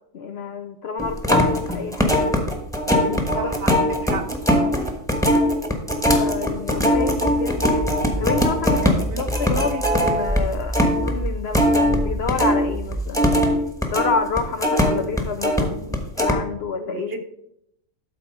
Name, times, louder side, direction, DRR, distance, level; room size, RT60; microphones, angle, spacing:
voice 1, 0.1-2.2 3.0-3.5 6.1-13.3 13.9-17.1, left 5 dB, 60° left, 8 dB, 0.7 m, -28 dB
sound 1, 1.0-12.6 12.9-15.6 15.9-16.3, equal, 5° left, 1.0 m, -20 dB
voice 2, 3.3-3.7 4.0-4.2 8.8-9.2 16.9-17.2, right 5 dB, 55° right, 7 dB, 0.8 m, -31 dB
sound 2, 6.9-9.9 10.3-13.4, right 1 dB, 15° right, 0.6 m, -30 dB
12.5 x 4.2 x 5.3 m, 0.77 s
omnidirectional pair, 1.4 m